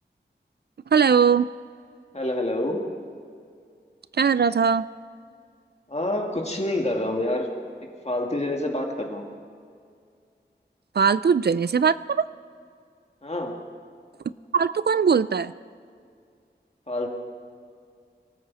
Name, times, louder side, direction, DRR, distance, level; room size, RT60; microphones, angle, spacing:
voice 1, 0.9-1.5 4.2-4.9 11.0-12.2 14.5-15.5, right 6 dB, 65° right, 16 dB, 0.4 m, -20 dB
voice 2, 2.1-2.9 5.9-7.5 7.8-9.3 13.2-13.6 16.9-17.1, left 1 dB, 35° left, 1 dB, 2.2 m, -27 dB
23.5 x 13.5 x 4.2 m, 2.2 s
wide cardioid pair, 65°, 18 cm